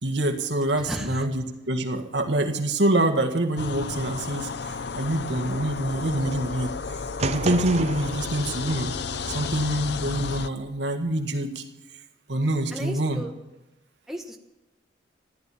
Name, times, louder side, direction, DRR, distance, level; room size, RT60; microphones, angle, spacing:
voice 1, 0.0-6.7 7.2-8.9 9.3-11.6 12.3-13.2, right 1 dB, 65° right, 3 dB, 1.7 m, -26 dB
voice 2, 0.8-1.2 12.7-13.3 14.1-14.4, equal, ahead, 1 dB, 1.2 m, -34 dB
sound 1, 3.6-10.5, left 5 dB, 65° left, 0.6 m, -33 dB
sound 2, 7.2-9.5, right 4 dB, 35° right, 0.5 m, -33 dB
14.5 x 11.0 x 7.1 m, 0.99 s
head